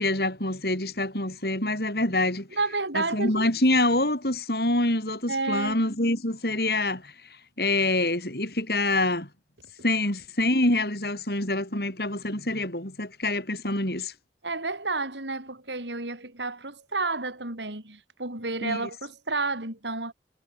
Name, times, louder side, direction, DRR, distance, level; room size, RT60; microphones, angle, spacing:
voice 1, 0.0-2.5 2.9-7.1 7.6-9.3 9.8-14.1 18.6-18.8, left 2 dB, 60° left, 6.4 m, -26 dB
voice 2, 2.5-3.5 5.3-5.8 14.4-20.1, right 3 dB, 90° right, 6.1 m, -31 dB
head